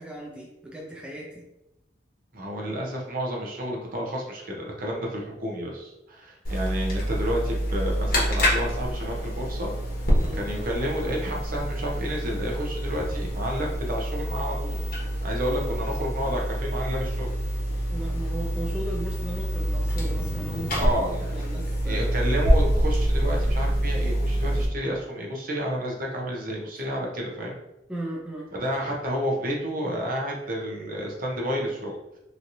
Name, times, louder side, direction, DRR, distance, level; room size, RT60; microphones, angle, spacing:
voice 1, 0.0-1.5 10.2-10.4 17.9-22.1 27.9-28.5, right 1 dB, 5° right, -3 dB, 0.4 m, -37 dB
voice 2, 2.3-9.7 10.3-14.8 15.2-17.4 20.8-21.5 21.8-27.6 28.5-32.0, equal, 50° right, -1 dB, 0.7 m, -30 dB
sound 1, 6.4-24.7, equal, 50° left, 0.9 m, -26 dB
3.1 x 2.7 x 2.6 m, 0.88 s
head